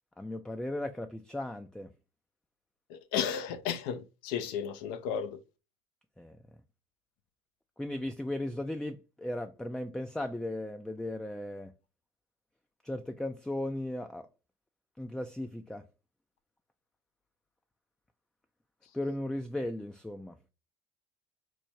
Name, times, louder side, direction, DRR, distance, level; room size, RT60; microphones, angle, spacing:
voice 1, 0.2-1.9 6.2-6.4 7.8-11.7 12.8-14.3 15.0-15.8 18.9-20.4, left 1 dB, 5° left, 0.3 m, -36 dB
voice 2, 2.9-5.4, left 8 dB, 75° left, 0.6 m, -34 dB
4.5 x 2.2 x 2.7 m
supercardioid pair, 85°, 18 cm